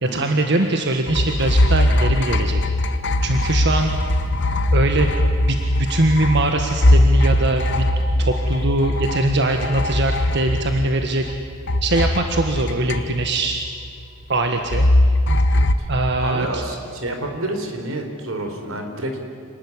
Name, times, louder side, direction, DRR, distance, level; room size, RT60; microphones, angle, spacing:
voice 1, 0.0-2.6 3.2-4.0 4.7-5.1 5.4-5.6 5.9-7.9 8.2-11.3 11.8-13.6 14.3-14.9 15.9-16.6, right 2 dB, 55° right, 4 dB, 1.6 m, -21 dB
sound 1, 1.1-11.4 11.7-13.5 14.7-15.7, left 1 dB, 60° left, 1.3 m, -20 dB
voice 2, 16.2-19.3, right 1 dB, 85° right, 5 dB, 4.2 m, -28 dB
28.0 x 19.5 x 9.9 m, 2.4 s
head